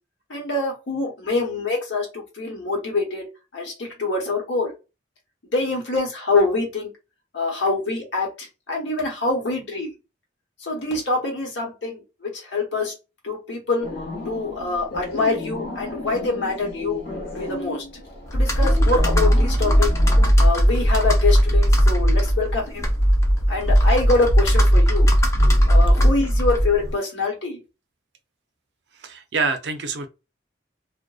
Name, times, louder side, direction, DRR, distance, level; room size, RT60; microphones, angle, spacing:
voice 1, 0.3-3.2 3.5-4.7 5.5-6.9 7.3-9.9 10.6-12.9 13.2-13.9 14.2-17.0 17.3-17.8 18.3-19.9 20.4-22.9 23.5-25.1 25.7-27.6, left 3 dB, 70° left, 1.1 m, -25 dB
sound 1, 13.8-20.3, left 2 dB, 55° left, 0.8 m, -33 dB
Computer keyboard, 18.3-26.9, equal, 15° left, 0.3 m, -17 dB
voice 2, 29.0-30.1, right 4 dB, 60° right, 0.4 m, -26 dB
2.5 x 2.1 x 2.3 m
head